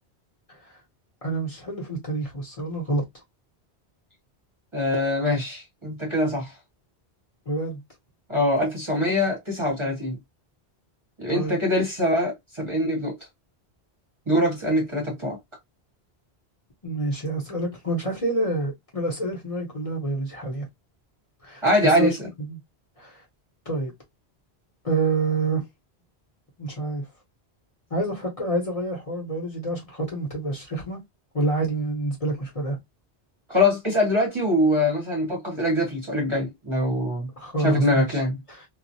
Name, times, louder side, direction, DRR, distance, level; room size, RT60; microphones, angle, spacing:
voice 1, 1.2-3.0 7.5-7.8 11.3-11.6 16.8-20.7 21.4-22.6 23.0-23.2 23.7-23.9 24.8-25.6 26.6-27.0 27.9-31.0 31.3-32.8 37.4-38.2 38.5-38.6, right 2 dB, 35° left, 0.9 m, -27 dB
voice 2, 4.7-6.5 8.3-10.2 11.2-13.2 14.3-15.4 21.6-22.2 33.5-37.3 37.6-38.4, left 1 dB, 30° right, 0.8 m, -23 dB
2.3 x 2.0 x 2.6 m
omnidirectional pair, 1.1 m